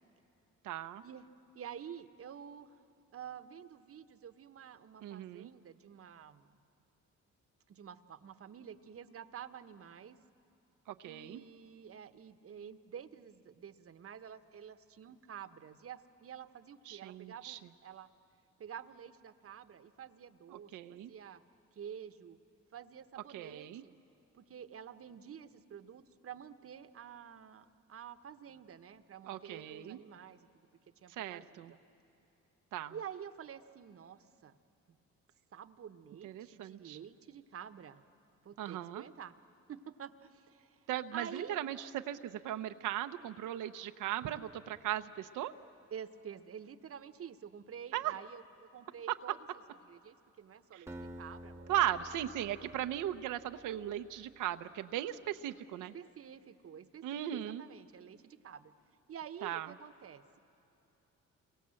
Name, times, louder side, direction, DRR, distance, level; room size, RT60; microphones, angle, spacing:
voice 1, 0.6-1.0 5.0-5.5 10.9-11.4 16.9-17.6 20.5-21.1 23.3-23.8 29.3-30.0 31.1-31.7 32.7-32.9 36.2-37.0 38.6-39.0 40.9-45.5 47.9-48.1 50.7-50.8 51.7-55.9 57.0-57.6 59.4-59.7, right 12 dB, 85° right, 8 dB, 0.8 m, -38 dB
voice 2, 1.5-2.8 3.1-6.6 7.7-10.2 11.0-18.1 18.6-21.4 21.7-22.4 22.7-24.0 24.3-30.7 31.0-31.8 32.9-34.6 34.9-35.0 35.5-38.0 38.4-39.3 39.7-41.6 45.9-49.4 49.8-51.8 55.9-58.7 59.1-60.4, right 8 dB, 50° right, 11 dB, 1.1 m, -49 dB
Acoustic guitar, 50.9-53.9, right 1 dB, 10° right, 1.2 m, -50 dB
29.5 x 23.5 x 7.7 m, 2.9 s
cardioid pair, 90°, 30 cm